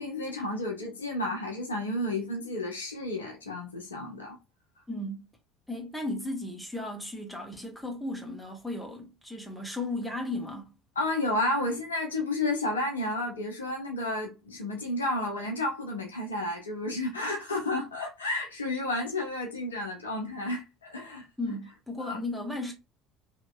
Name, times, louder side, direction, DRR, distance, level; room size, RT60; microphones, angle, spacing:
voice 1, 0.0-4.4 11.0-21.2 22.0-22.2, left 2 dB, 80° left, 0.8 m, -31 dB
voice 2, 4.9-5.3 5.7-10.7 21.4-22.7, left 2 dB, 5° left, 1.2 m, -35 dB
2.9 x 2.8 x 2.2 m
figure-of-eight pair, 60°, 0 cm